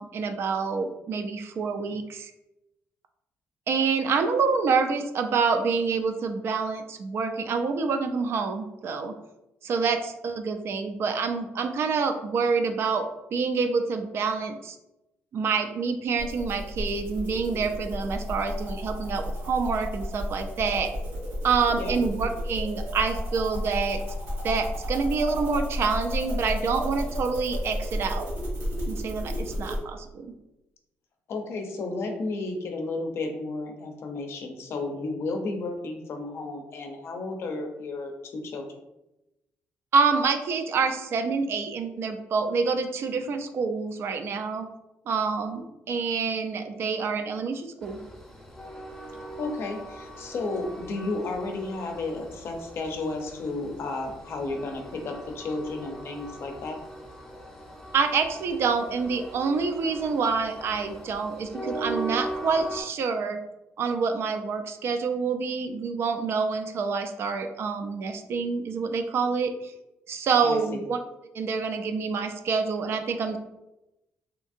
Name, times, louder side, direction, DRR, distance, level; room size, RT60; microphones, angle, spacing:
voice 1, 0.0-2.3 3.7-9.1 9.6-14.8 15.3-20.9 21.4-24.0 24.4-28.3 28.9-30.3 39.9-44.7 45.1-48.0 57.9-63.4 63.8-69.7 70.1-71.0 71.3-73.4, right 5 dB, 60° right, 7 dB, 0.3 m, -27 dB
sound 1, 16.2-29.8, equal, 85° right, 1.0 m, -32 dB
voice 2, 31.3-38.7 49.4-56.8 70.4-70.8, left 3 dB, 60° left, 4 dB, 0.5 m, -33 dB
Train, 47.8-62.8, right 1 dB, 10° left, 0.6 m, -40 dB
2.8 x 2.5 x 2.4 m, 0.92 s
cardioid pair, 100°, 5 cm